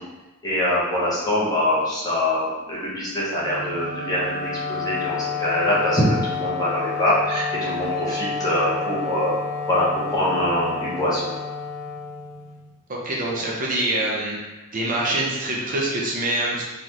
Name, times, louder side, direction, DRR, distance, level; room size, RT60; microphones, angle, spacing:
voice 1, 0.4-9.3 9.7-11.3, left 1 dB, 20° left, -7 dB, 1.1 m, -24 dB
Wind instrument woodwind instrument, 3.4-12.7, left 4 dB, 40° left, 1.3 m, -30 dB
voice 2, 12.9-14.4 14.7-16.7, right 1 dB, 40° right, -4 dB, 0.7 m, -25 dB
3.9 x 3.3 x 3.0 m, 1.1 s
head